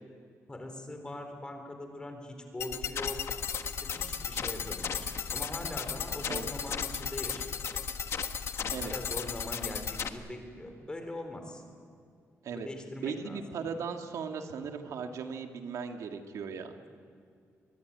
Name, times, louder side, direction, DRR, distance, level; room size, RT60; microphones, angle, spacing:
voice 1, 0.5-7.6 8.6-11.6 12.5-13.4, left 1 dB, 15° left, 5 dB, 3.8 m, -42 dB
sound 1, 2.6-10.1, left 7 dB, 55° left, 1.3 m, -35 dB
voice 2, 13.0-16.8, right 6 dB, 85° right, 4 dB, 2.0 m, -37 dB
24.5 x 21.5 x 9.5 m, 2.3 s
wide cardioid pair, 160°, 5 cm